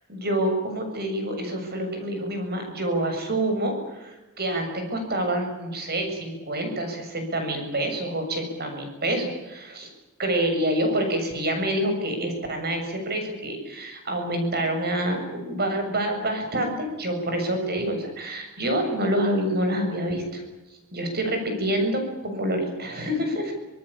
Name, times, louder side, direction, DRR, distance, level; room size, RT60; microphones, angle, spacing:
voice 1, 0.1-9.9 10.2-20.4 20.9-23.5, right 1 dB, 45° right, 5 dB, 7.2 m, -27 dB
26.5 x 18.5 x 8.7 m, 1.1 s
head